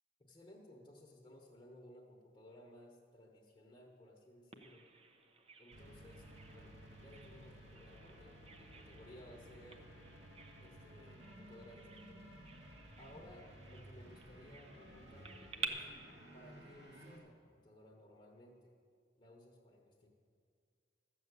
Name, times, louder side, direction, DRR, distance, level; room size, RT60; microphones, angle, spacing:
voice 1, 0.3-4.9 5.6-6.3 6.5-9.9 10.6-12.3 13.0-15.9 16.3-18.7 19.2-20.1, left 1 dB, 30° left, -1 dB, 1.2 m, -59 dB
Bird vocalization bird call bird song, 4.5-15.7, right 5 dB, 35° right, 0.9 m, -52 dB
sound 1, 5.7-17.2, equal, 75° right, 2.3 m, -56 dB
13.0 x 7.1 x 8.2 m, 2.2 s
head